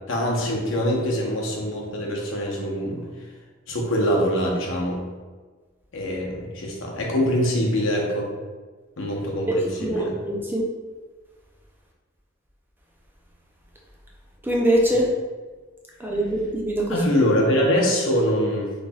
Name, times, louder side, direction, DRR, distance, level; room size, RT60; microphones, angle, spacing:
voice 1, 0.1-3.1 3.7-5.0 5.9-8.3 9.0-10.1 16.9-18.7, equal, 70° left, -2 dB, 0.8 m, -24 dB
voice 2, 9.8-10.7 14.4-15.1 16.0-17.0, right 1 dB, 10° right, -3 dB, 0.4 m, -23 dB
4.1 x 3.2 x 2.3 m, 1.4 s
head